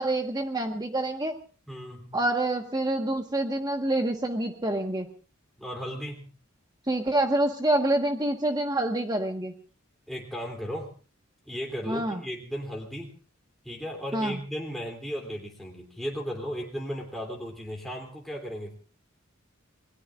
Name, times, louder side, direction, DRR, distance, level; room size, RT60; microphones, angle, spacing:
voice 1, 0.0-1.3 2.1-5.1 6.9-9.5 11.9-12.2 14.1-14.4, right 1 dB, 20° right, 4 dB, 1.4 m, -27 dB
voice 2, 1.7-2.2 5.6-6.3 10.1-10.9 11.5-13.1 13.6-18.8, equal, ahead, -1 dB, 3.0 m, -35 dB
27.5 x 21.0 x 2.5 m, 0.38 s
head